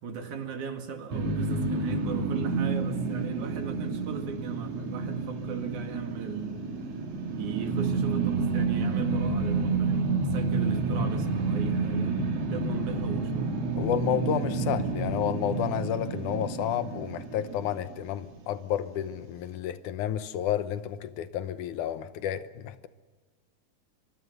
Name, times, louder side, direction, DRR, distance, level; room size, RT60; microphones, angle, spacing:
voice 1, 0.0-6.6 7.4-12.2 12.5-13.6, right 6 dB, 80° right, 3.5 m, -38 dB
sound 1, 1.1-18.3, right 4 dB, 60° right, 3.2 m, -29 dB
voice 2, 13.8-22.9, left 10 dB, 85° left, 2.4 m, -31 dB
24.0 x 22.5 x 6.6 m
omnidirectional pair, 3.4 m